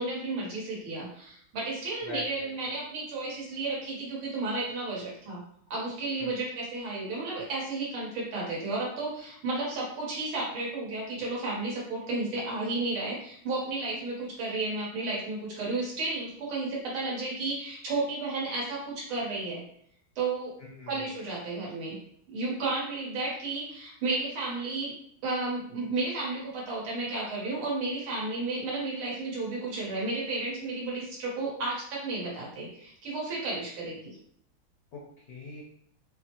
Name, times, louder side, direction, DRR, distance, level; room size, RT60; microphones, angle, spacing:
voice 1, 0.0-5.4 5.7-19.6 20.2-20.5 20.9-22.0 22.3-24.9 25.2-34.2, right 3 dB, 75° right, -5 dB, 2.1 m, -32 dB
voice 2, 2.0-2.8 6.2-6.4 20.6-21.2 34.9-35.6, left 4 dB, 60° left, -4 dB, 1.0 m, -44 dB
5.2 x 2.1 x 3.0 m, 0.66 s
omnidirectional pair, 2.4 m